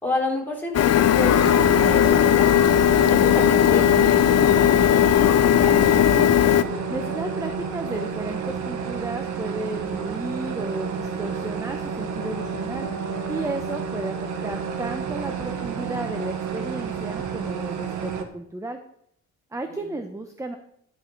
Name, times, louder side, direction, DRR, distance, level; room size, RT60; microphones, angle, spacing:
voice 1, 0.0-2.5 3.1-5.8 19.7-19.9, left 2 dB, 5° left, -2 dB, 3.7 m, -30 dB
Printer, 0.7-6.6, left 10 dB, 55° left, 0.7 m, -17 dB
sound 1, 1.2-18.2, right 6 dB, 75° right, 1.4 m, -30 dB
voice 2, 6.9-12.9 13.3-18.8 19.5-20.6, right 2 dB, 10° right, 6 dB, 0.9 m, -33 dB
12.5 x 6.0 x 4.7 m, 0.70 s
cardioid pair, 90°, 30 cm